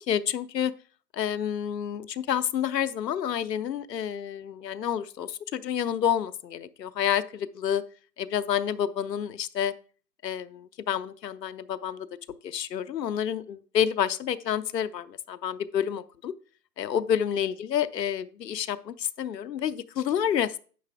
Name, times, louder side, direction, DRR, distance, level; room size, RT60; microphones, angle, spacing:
voice 1, 0.1-0.7 1.1-7.8 8.2-9.7 10.2-12.1 12.4-16.3 16.8-20.6, left 9 dB, 85° left, 13 dB, 0.7 m, -29 dB
9.5 x 6.6 x 3.5 m, 0.40 s
hypercardioid pair, 180°, 48 cm